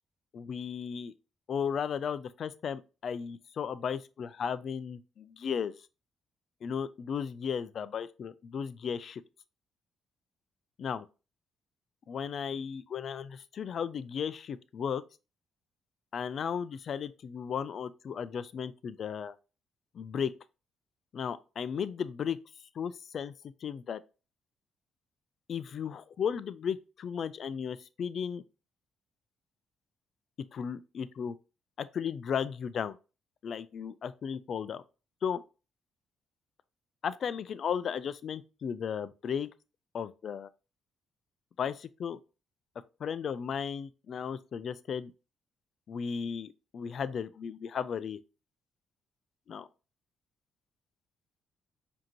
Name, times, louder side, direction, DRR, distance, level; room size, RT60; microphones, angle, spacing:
voice 1, 0.3-1.1 1.5-5.8 6.6-9.2 10.8-11.1 12.1-15.0 16.1-19.4 19.9-20.3 21.1-22.4 22.8-23.3 23.6-24.0 25.5-28.4 30.5-31.3 31.8-33.0 33.4-34.8 35.2-35.4 37.0-39.5 39.9-40.5 41.6-42.2 43.0-45.1 45.9-48.2 49.5-49.7, left 7 dB, 55° left, 0.3 m, -35 dB
5.1 x 2.7 x 2.9 m
cardioid pair, 90°, 0 cm